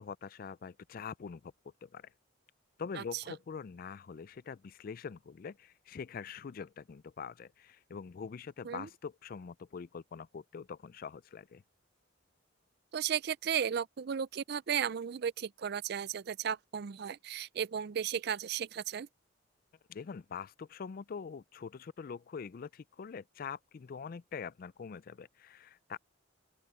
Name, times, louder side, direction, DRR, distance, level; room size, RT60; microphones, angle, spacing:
voice 1, 0.0-1.5 1.8-2.1 2.8-11.6 19.9-26.0, left 6 dB, 45° left, 0.3 m, -44 dB
voice 2, 12.9-19.1, right 8 dB, 55° right, 0.4 m, -35 dB
open air
head